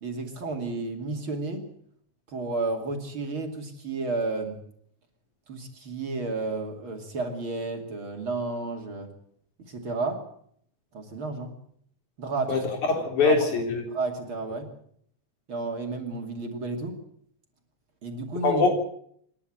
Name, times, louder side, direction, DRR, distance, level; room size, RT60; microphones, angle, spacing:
voice 1, 0.0-1.7 2.3-4.6 5.5-9.1 9.6-10.2 10.9-11.5 12.2-12.6 13.2-13.5 13.9-14.7 15.5-17.0 18.0-18.7, right 3 dB, 45° right, 3 dB, 3.2 m, -32 dB
voice 2, 12.5-13.8 18.4-18.7, left 4 dB, 75° left, 3 dB, 5.4 m, -23 dB
27.0 x 11.5 x 8.7 m, 0.66 s
omnidirectional pair, 3.4 m